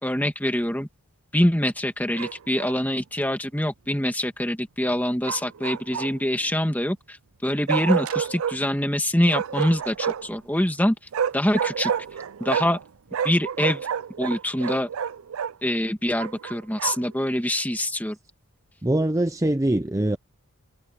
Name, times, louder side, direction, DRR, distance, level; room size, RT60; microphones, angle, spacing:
voice 1, 0.0-0.9 1.3-7.2 7.4-11.0 11.3-11.9 12.4-12.8 13.2-13.8 14.2-14.9 15.6-18.2, left 1 dB, 10° left, 1.9 m, -24 dB
Bark, 2.1-2.8 5.2-6.3 7.7-8.6 9.3-10.4 11.1-12.8 13.1-15.5 16.2-17.1, right 7 dB, 70° right, 0.4 m, -29 dB
voice 2, 18.8-20.2, right 1 dB, 15° right, 0.5 m, -23 dB
head